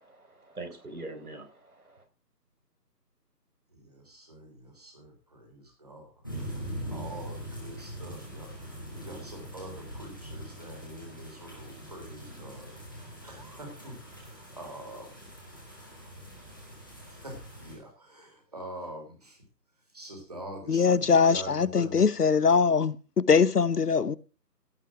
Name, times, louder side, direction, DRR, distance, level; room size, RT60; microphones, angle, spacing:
voice 1, 0.0-2.0, right 2 dB, 60° right, 4.3 m, -43 dB
voice 2, 3.7-6.2 6.5-15.1 17.1-19.4 19.8-22.1, right 1 dB, 25° right, 3.3 m, -45 dB
sound 1, 6.2-17.7, equal, 15° left, 2.0 m, -42 dB
voice 3, 20.7-24.2, left 5 dB, 70° left, 0.8 m, -22 dB
16.5 x 6.1 x 5.9 m
figure-of-eight pair, 180°, 49 cm